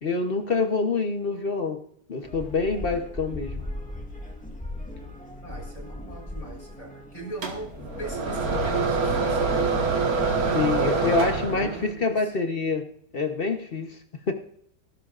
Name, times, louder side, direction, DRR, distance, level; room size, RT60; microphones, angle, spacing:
voice 1, 0.0-1.8 2.1-3.6 10.5-12.9 13.1-14.0 14.3-14.4, left 4 dB, 40° left, 6 dB, 1.0 m, -26 dB
sound 1, 2.2-9.9, left 1 dB, 5° left, 1.8 m, -39 dB
voice 2, 5.4-10.6 11.5-12.2, right 2 dB, 20° left, -1 dB, 4.2 m, -40 dB
sound 2, 7.4-11.9, right 4 dB, 60° right, 2.0 m, -25 dB
19.0 x 11.5 x 2.5 m, 0.66 s
omnidirectional pair, 1.8 m